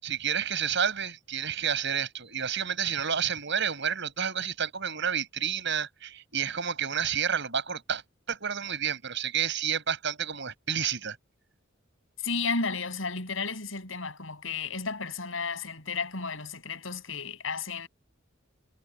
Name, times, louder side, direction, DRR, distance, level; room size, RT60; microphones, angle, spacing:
voice 1, 0.0-8.0 8.3-11.2, right 8 dB, 60° right, 6.2 m, -30 dB
voice 2, 12.2-17.9, left 4 dB, 70° left, 7.6 m, -33 dB
head